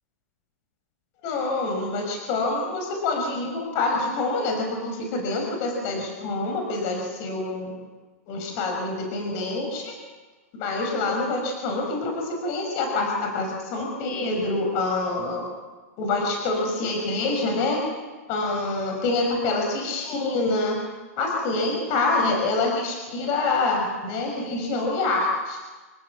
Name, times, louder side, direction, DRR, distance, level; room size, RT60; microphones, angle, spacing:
voice 1, 1.2-4.7 5.1-7.7 8.3-9.9 10.6-15.4 16.0-17.8 18.3-20.8 21.2-25.6, left 3 dB, 35° left, 2 dB, 6.4 m, -26 dB
27.0 x 18.5 x 8.6 m, 1.3 s
hypercardioid pair, 160°, 9 cm